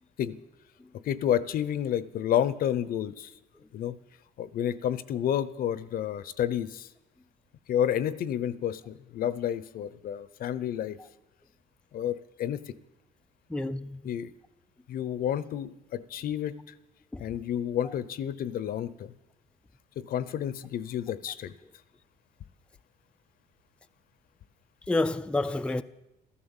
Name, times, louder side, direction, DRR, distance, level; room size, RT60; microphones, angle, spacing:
voice 1, 1.1-3.3 3.7-3.9 4.4-6.9 7.7-11.0 11.9-12.7 14.0-14.3 14.9-16.5 17.2-19.1 20.0-21.5, left 10 dB, 60° left, 0.7 m, -30 dB
voice 2, 13.5-14.0 17.1-17.2 24.9-25.8, left 2 dB, 5° left, 0.4 m, -28 dB
14.0 x 12.5 x 7.3 m
cardioid pair, 110°, 17 cm